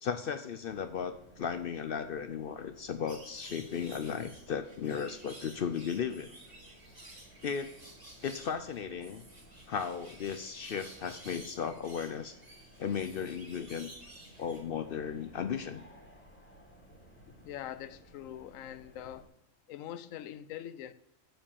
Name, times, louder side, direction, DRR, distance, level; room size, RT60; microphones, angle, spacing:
voice 1, 0.0-6.3 7.4-7.7 8.2-9.2 9.7-12.4 12.8-13.9 14.4-15.8, left 7 dB, 60° left, 0.6 m, -35 dB
sound 1, 0.7-19.3, right 1 dB, 10° left, 2.3 m, -58 dB
sound 2, 3.1-14.6, right 1 dB, 30° right, 2.3 m, -53 dB
voice 2, 17.4-19.3 19.7-20.9, left 11 dB, 90° left, 1.0 m, -43 dB
7.5 x 7.3 x 7.0 m
omnidirectional pair, 1.3 m